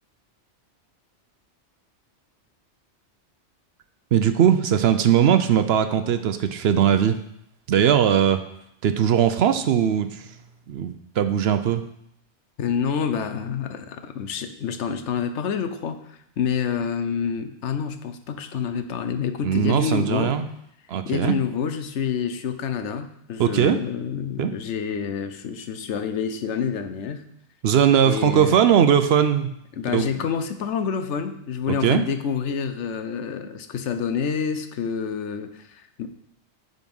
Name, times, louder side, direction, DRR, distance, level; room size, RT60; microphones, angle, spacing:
voice 1, 4.1-7.2 7.7-8.4 8.8-10.4 10.7-11.8 19.4-20.5 20.9-21.3 23.4-23.8 24.4-24.5 27.6-29.5 29.9-30.1 31.7-32.0, right 9 dB, 65° right, 9 dB, 0.8 m, -20 dB
voice 2, 12.6-20.4 21.0-27.2 28.0-28.6 29.8-36.1, left 7 dB, 75° left, 9 dB, 1.0 m, -28 dB
9.4 x 4.1 x 5.4 m, 0.74 s
omnidirectional pair, 1.2 m